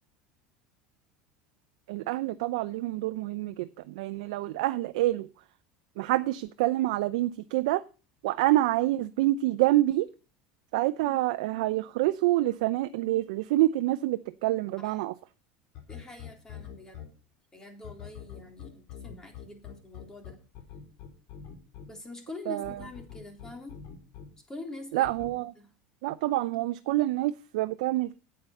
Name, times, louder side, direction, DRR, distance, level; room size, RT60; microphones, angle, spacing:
voice 1, 1.9-5.3 6.0-7.8 8.2-10.1 10.7-15.1 22.5-22.8 24.9-25.5 26.0-28.2, right 16 dB, 75° right, 0.5 m, -27 dB
sound 1, 15.7-17.1 17.8-21.9 22.6-24.3 25.0-25.3, left 9 dB, 60° left, 4.0 m, -43 dB
voice 2, 15.9-17.0 17.5-20.4 21.9-23.8 24.5-25.1 25.6-25.7, left 2 dB, 15° left, 3.7 m, -44 dB
8.7 x 8.5 x 6.5 m
supercardioid pair, 110°, 4 cm